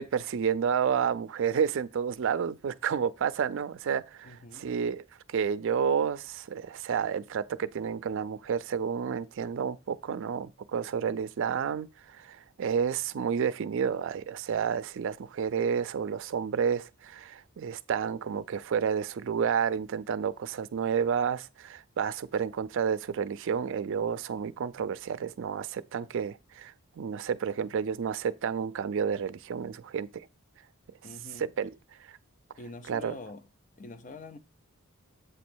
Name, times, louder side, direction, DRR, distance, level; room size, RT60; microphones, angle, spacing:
voice 1, 0.0-5.0 5.3-30.3 31.4-31.7 32.1-32.2 32.9-33.2, right 7 dB, 60° right, 0.4 m, -30 dB
voice 2, 4.2-4.7 31.0-31.5 32.6-33.5 33.8-34.4, left 3 dB, 35° left, 0.6 m, -45 dB
7.9 x 3.1 x 6.1 m
head